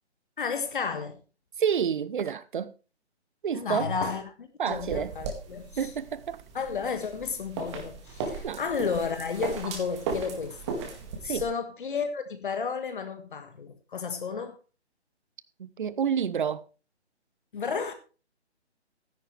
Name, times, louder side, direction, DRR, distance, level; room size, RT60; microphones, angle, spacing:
voice 1, 0.4-1.2 3.5-5.9 6.5-10.9 11.2-14.6 17.5-17.9, left 5 dB, 45° left, 1.5 m, -32 dB
voice 2, 1.6-2.7 3.4-3.9 4.6-5.1 5.8-6.4 8.4-8.6 11.2-11.4 15.6-16.6, right 7 dB, 45° right, 0.8 m, -29 dB
sound 1, 4.7-11.4, right 5 dB, 25° right, 2.1 m, -37 dB
13.5 x 10.5 x 3.3 m
figure-of-eight pair, 145°, 34 cm